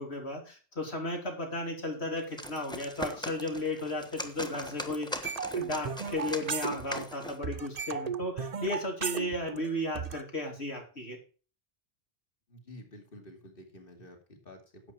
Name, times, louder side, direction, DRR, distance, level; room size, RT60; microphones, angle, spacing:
voice 1, 0.0-5.1 5.6-11.2, left 1 dB, 85° left, 1 dB, 3.7 m, -34 dB
sound 1, 2.2-7.5, left 1 dB, 5° left, 1.2 m, -41 dB
sound 2, 5.2-7.2 7.4-10.2, right 5 dB, 40° right, 0.8 m, -35 dB
voice 2, 12.5-14.9, left 1 dB, 60° left, 4 dB, 2.7 m, -50 dB
11.0 x 7.8 x 4.6 m, 0.36 s
omnidirectional pair, 1.1 m